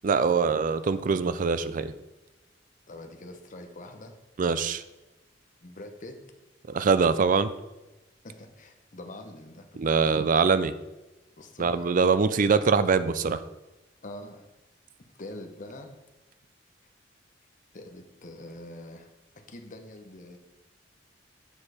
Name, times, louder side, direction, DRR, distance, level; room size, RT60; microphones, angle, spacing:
voice 1, 0.0-1.9 4.4-4.8 6.7-7.5 9.8-10.7 11.6-13.4, right 5 dB, 45° right, 13 dB, 0.4 m, -23 dB
voice 2, 2.9-4.2 5.6-6.2 8.2-9.8 11.4-11.9 14.0-14.5 15.2-15.9 17.7-19.1 19.5-20.4, left 1 dB, 45° left, 5 dB, 1.0 m, -44 dB
7.2 x 6.5 x 4.9 m, 1.0 s
head